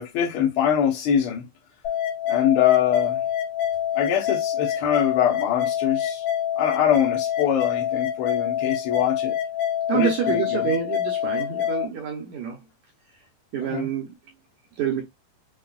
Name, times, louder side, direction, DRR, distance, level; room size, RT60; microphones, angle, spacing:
voice 1, 0.0-1.5 2.3-3.2 3.9-6.2 6.6-9.4 9.9-10.7 13.6-13.9, left 9 dB, 85° left, 1.2 m, -23 dB
sound 1, 1.8-11.9, left 10 dB, 60° left, 2.6 m, -26 dB
voice 2, 9.9-12.6 13.5-14.1 14.8-15.0, right 8 dB, 70° right, 1.9 m, -27 dB
5.7 x 2.3 x 2.3 m
omnidirectional pair, 3.9 m